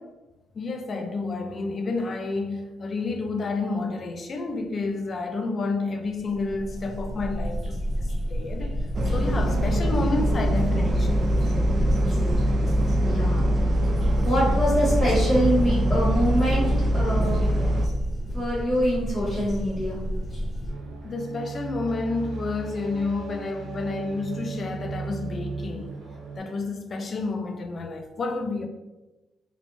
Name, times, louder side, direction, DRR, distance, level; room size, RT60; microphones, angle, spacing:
voice 1, 0.5-8.8 9.1-11.2 21.0-26.0 26.4-28.7, left 3 dB, 45° left, 0.4 m, -30 dB
sound 1, 6.2-20.7, equal, 25° left, 1.5 m, -30 dB
sound 2, 8.9-17.9, equal, 40° right, 0.3 m, -23 dB
voice 2, 13.0-13.5 14.0-16.7 16.9-17.4 18.3-20.0, equal, ahead, 1.1 m, -24 dB
sound 3, 20.7-26.4, right 4 dB, 70° right, 0.8 m, -36 dB
2.5 x 2.1 x 3.0 m
cardioid pair, 90°, 0 cm